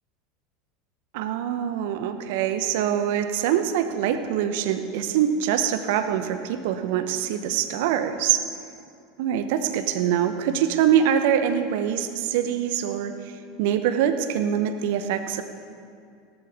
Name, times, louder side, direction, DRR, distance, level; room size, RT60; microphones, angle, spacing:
voice 1, 1.1-8.4 9.2-13.1 13.6-15.4, right 9 dB, 60° right, 9 dB, 0.9 m, -24 dB
18.0 x 12.0 x 3.5 m, 2.4 s
figure-of-eight pair, 80°, 0 cm